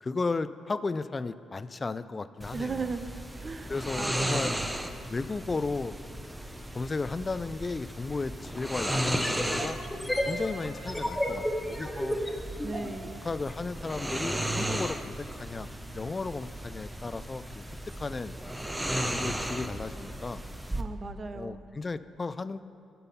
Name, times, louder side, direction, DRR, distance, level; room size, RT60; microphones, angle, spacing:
voice 1, 0.0-2.9 3.7-4.5 5.1-6.0 6.7-9.8 10.3-12.2 13.2-15.7 15.9-17.6 18.0-18.3 19.1-20.4 21.3-22.6, left 3 dB, 35° left, 13 dB, 0.4 m, -34 dB
sound 1, 2.4-20.8, right 1 dB, 10° right, 0.8 m, -35 dB
voice 2, 2.5-3.1 3.4-4.6 12.6-13.2 20.8-21.6, right 4 dB, 45° right, 10 dB, 0.7 m, -37 dB
sound 2, 8.9-12.9, equal, 5° left, 1.6 m, -32 dB
13.0 x 5.5 x 5.5 m, 2.4 s
hypercardioid pair, 50°, 0 cm